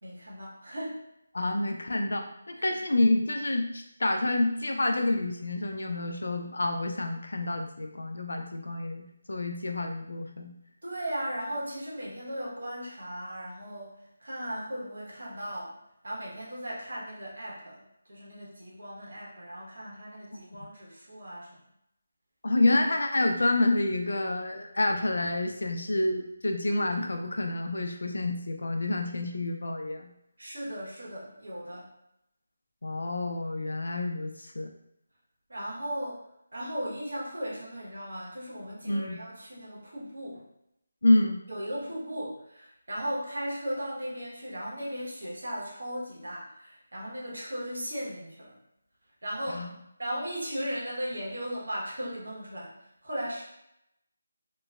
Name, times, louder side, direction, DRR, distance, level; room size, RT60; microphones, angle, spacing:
voice 1, 0.0-1.0 2.6-2.8 10.8-15.7 16.0-21.6 30.4-31.9 35.5-40.4 41.5-48.6 49.2-49.7 50.0-52.7 53.0-53.4, equal, 90° right, -4 dB, 1.1 m, -37 dB
voice 2, 1.3-10.5 20.3-20.4 22.4-30.1 32.8-34.7 38.8-39.2 41.0-41.4 49.5-49.7, left 2 dB, 85° left, 4 dB, 0.4 m, -28 dB
2.9 x 2.0 x 2.3 m, 0.80 s
figure-of-eight pair, 180°, 0 cm